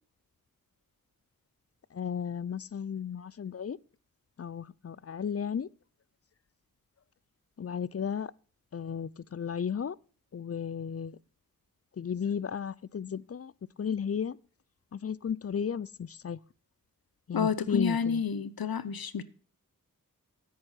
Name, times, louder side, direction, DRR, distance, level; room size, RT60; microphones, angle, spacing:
voice 1, 1.9-3.8 4.4-5.7 7.6-8.3 8.7-10.0 10.3-11.2 11.9-13.5 13.8-14.4 14.9-16.4 17.3-18.2, left 7 dB, 45° left, 0.5 m, -34 dB
voice 2, 17.3-19.2, left 6 dB, 85° left, 0.8 m, -29 dB
9.4 x 9.2 x 5.7 m
cardioid pair, 40°, 35 cm